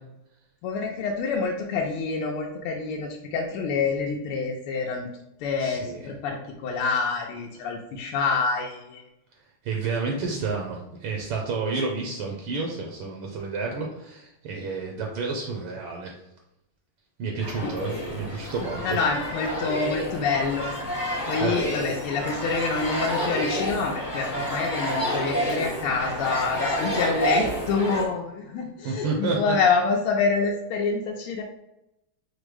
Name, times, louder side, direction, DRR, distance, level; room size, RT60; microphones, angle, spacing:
voice 1, 0.6-5.1 5.4-9.0 17.6-17.7 18.8-20.7 21.3-31.4, left 4 dB, 85° left, 0 dB, 1.5 m, -27 dB
voice 2, 5.6-6.1 9.3-16.1 17.2-19.0 21.0-21.6 28.8-29.5, right 4 dB, 75° right, 0 dB, 1.5 m, -30 dB
sound 1, 17.4-28.1, equal, 35° left, 0.7 m, -29 dB
4.9 x 2.0 x 4.7 m, 0.88 s
omnidirectional pair, 2.4 m